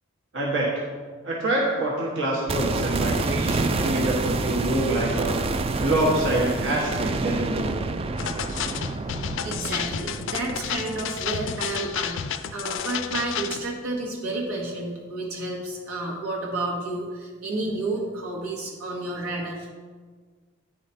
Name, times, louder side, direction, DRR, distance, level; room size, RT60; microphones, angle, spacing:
voice 1, 0.3-0.7 1.2-5.4 5.8-7.8, right 1 dB, 60° right, -4 dB, 1.3 m, -25 dB
sound 1, 2.5-12.5 12.8-12.9, right 3 dB, 25° right, 0.3 m, -28 dB
sound 2, 8.2-13.6, left 8 dB, 60° left, 0.4 m, -31 dB
voice 2, 9.3-19.7, right 2 dB, 80° right, -2 dB, 1.6 m, -31 dB
9.4 x 5.0 x 4.2 m, 1.5 s
head